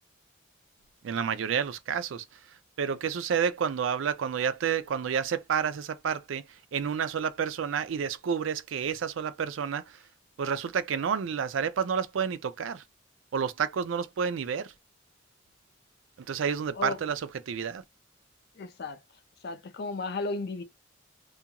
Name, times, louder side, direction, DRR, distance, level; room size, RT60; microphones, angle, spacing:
voice 1, 1.0-2.2 2.8-6.4 6.7-10.0 10.4-12.8 13.3-14.7 16.3-17.8, right 7 dB, 80° right, 0.4 m, -30 dB
voice 2, 18.6-19.0 19.4-20.6, left 3 dB, 55° left, 0.5 m, -34 dB
2.4 x 2.3 x 2.8 m
head